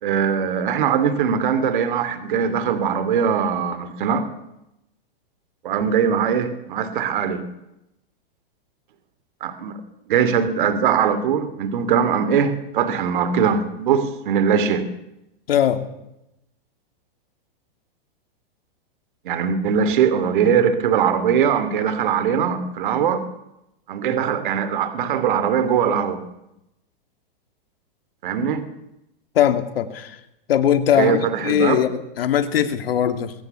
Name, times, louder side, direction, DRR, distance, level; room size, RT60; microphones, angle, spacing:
voice 1, 0.0-4.3 5.6-7.5 9.4-9.8 10.1-14.9 19.2-23.2 23.9-26.2 28.2-28.6 31.0-31.8, right 7 dB, 55° right, 11 dB, 2.9 m, -21 dB
voice 2, 15.5-15.9 29.3-30.2 30.5-33.3, left 10 dB, 75° left, 8 dB, 2.7 m, -20 dB
22.5 x 17.0 x 8.4 m, 0.85 s
supercardioid pair, 170°, 30 cm